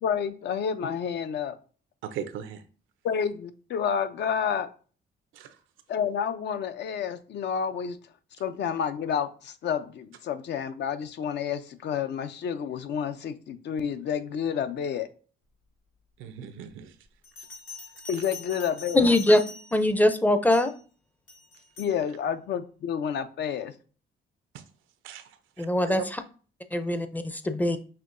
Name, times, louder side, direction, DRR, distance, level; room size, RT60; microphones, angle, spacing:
voice 1, 0.0-1.6 3.0-4.7 5.9-8.0 8.4-15.1 18.1-19.1 21.8-23.7, left 7 dB, 60° left, 11 dB, 0.5 m, -29 dB
voice 2, 2.0-2.6 5.3-5.6 16.2-16.9 24.5-24.6 25.0-26.0, right 9 dB, 90° right, 10 dB, 0.5 m, -39 dB
Bell, 17.2-19.9 20.5-20.8 21.3-22.0, left 4 dB, 80° left, 1.8 m, -44 dB
voice 3, 18.9-19.4 19.7-20.7 25.6-26.0 26.7-27.8, left 1 dB, 10° left, 9 dB, 0.5 m, -22 dB
5.7 x 2.8 x 2.5 m, 0.39 s
cardioid pair, 90°, 20 cm